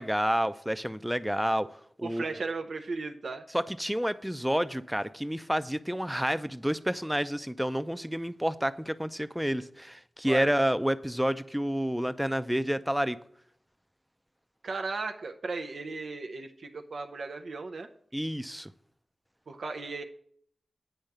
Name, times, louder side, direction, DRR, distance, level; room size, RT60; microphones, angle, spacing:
voice 1, 0.0-1.7 2.0-2.2 3.5-13.2 18.1-18.7, equal, 5° right, 13 dB, 0.5 m, -29 dB
voice 2, 2.0-3.4 10.3-10.5 14.6-17.9 19.5-20.0, right 3 dB, 75° right, 5 dB, 0.6 m, -36 dB
8.9 x 4.7 x 6.6 m, 0.64 s
wide cardioid pair, 75°, 0 cm